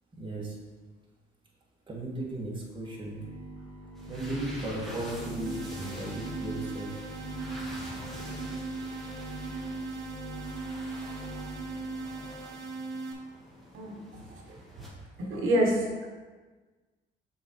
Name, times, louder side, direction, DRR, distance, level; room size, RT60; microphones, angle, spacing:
voice 1, 0.1-0.6 1.9-3.2 4.1-6.9, right 1 dB, 25° right, -3 dB, 1.8 m, -36 dB
sound 1, 2.8-12.5, right 2 dB, 90° left, 1.0 m, -42 dB
sound 2, 3.9-14.9, equal, ahead, 2.0 m, -47 dB
sound 3, 5.5-13.1, right 3 dB, 75° right, 0.9 m, -39 dB
voice 2, 13.7-14.6 15.2-16.1, right 1 dB, 90° right, -1 dB, 1.2 m, -28 dB
6.7 x 4.2 x 4.5 m, 1.3 s
cardioid pair, 90°, 20 cm